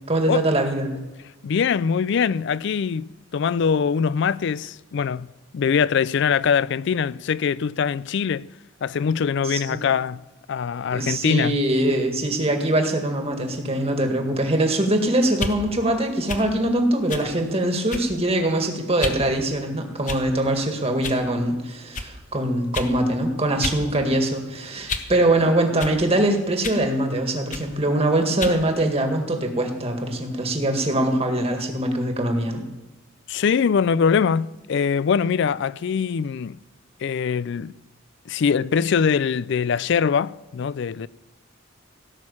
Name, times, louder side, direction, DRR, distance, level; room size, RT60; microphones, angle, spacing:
voice 1, 0.1-1.0 9.4-9.8 10.9-32.7, right 1 dB, 30° right, 1.9 m, -23 dB
voice 2, 1.4-5.3 5.5-8.5 8.8-10.2 10.5-11.6 33.3-36.6 37.0-37.8 38.3-41.1, left 6 dB, 60° left, 0.3 m, -22 dB
sound 1, 15.3-15.6 16.3-16.5 17.1-17.3 17.9-18.2 19.0-19.2 20.0-20.4 21.0-21.2 21.9-22.1 22.7-22.9 23.6-23.8 24.2-25.2 25.8-26.0 26.6-26.9 27.5-27.7 28.4-28.6, left 4 dB, 40° left, 1.0 m, -31 dB
17.0 x 6.4 x 8.6 m
head